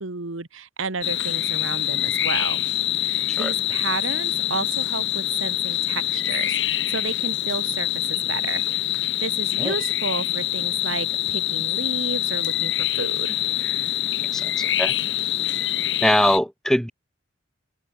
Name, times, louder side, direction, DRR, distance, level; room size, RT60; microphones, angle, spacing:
voice 1, 0.0-2.7 2.9-8.7 9.0-13.4, right 4 dB, 90° right, 1.5 m, -32 dB
sound 1, 1.0-16.4, left 13 dB, 65° left, 2.0 m, -25 dB
voice 2, 14.3-15.0 16.0-16.9, equal, 5° left, 2.4 m, -22 dB
open air
head